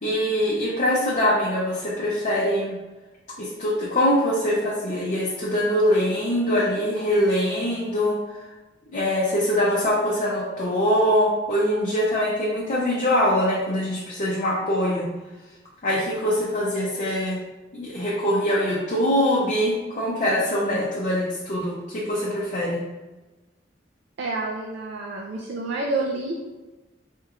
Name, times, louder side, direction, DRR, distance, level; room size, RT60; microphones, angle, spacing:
voice 1, 0.0-2.8 3.4-8.2 8.9-15.1 15.8-17.4 17.7-22.8, equal, 40° left, -5 dB, 0.6 m, -23 dB
voice 2, 24.2-26.4, right 2 dB, 65° right, -1 dB, 0.4 m, -28 dB
4.3 x 2.9 x 2.4 m, 1.1 s
head